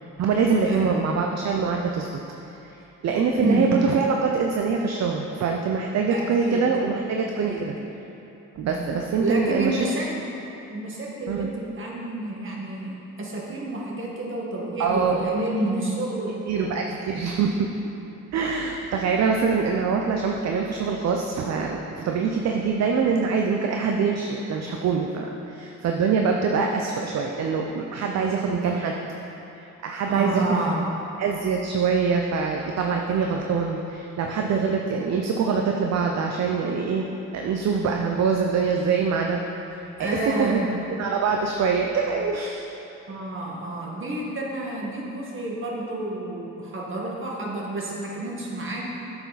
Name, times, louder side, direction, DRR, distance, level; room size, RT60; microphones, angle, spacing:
voice 1, 0.2-2.1 2.6-2.7 3.0-7.8 8.6-9.8 11.3-11.5 14.8-15.2 16.5-17.7 18.3-28.9 29.6-30.4 31.2-37.1 37.3-39.4 40.0-40.1 40.4-40.6 41.0-42.7, right 5 dB, 60° right, 2 dB, 0.7 m, -24 dB
voice 2, 3.4-3.7 6.1-6.7 7.5-7.7 8.6-8.9 9.2-10.3 10.7-12.9 13.2-17.1 30.1-30.8 40.0-40.7 43.1-48.8, right 2 dB, 40° right, -3 dB, 1.8 m, -29 dB
8.9 x 7.0 x 4.1 m, 2.9 s
cardioid pair, 90°, 30 cm